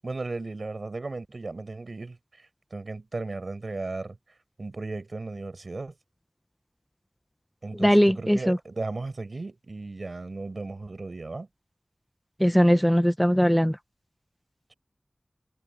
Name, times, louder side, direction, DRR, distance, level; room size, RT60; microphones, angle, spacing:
voice 1, 0.0-2.2 2.7-4.2 4.6-5.9 7.6-11.5, right 3 dB, 80° right, 6.4 m, -35 dB
voice 2, 7.8-8.6 12.4-13.7, equal, 5° left, 1.4 m, -20 dB
wide cardioid pair, 55°, 0 cm